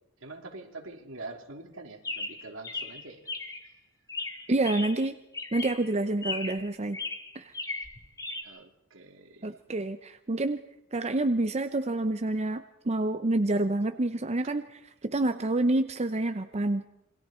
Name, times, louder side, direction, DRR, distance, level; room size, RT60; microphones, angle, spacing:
voice 1, 0.2-3.3 3.6-3.7 8.4-9.6, right 2 dB, 70° right, 2 dB, 3.2 m, -45 dB
Chirp tweet, 2.0-3.7 4.1-5.1 5.3-5.9 6.2-6.7 6.9-8.4, left 3 dB, 15° left, 2.0 m, -36 dB
voice 2, 4.5-5.1 5.5-7.0 7.3-7.5 9.4-10.6 10.9-16.8, right 2 dB, 30° right, 9 dB, 0.7 m, -28 dB
27.5 x 22.5 x 4.4 m, 0.86 s
head